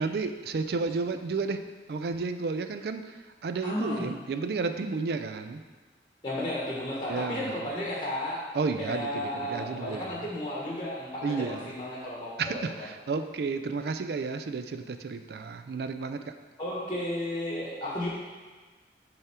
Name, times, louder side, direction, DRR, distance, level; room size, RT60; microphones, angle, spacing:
voice 1, 0.0-1.6 1.9-3.2 3.4-5.6 7.1-7.6 8.5-10.1 11.2-11.7 12.4-16.3, right 4 dB, 60° right, 8 dB, 0.4 m, -32 dB
voice 2, 3.6-4.2 6.2-8.4 8.8-12.4 12.7-12.9 16.6-18.1, left 1 dB, 25° left, -5 dB, 1.0 m, -33 dB
6.9 x 3.5 x 4.3 m, 1.3 s
head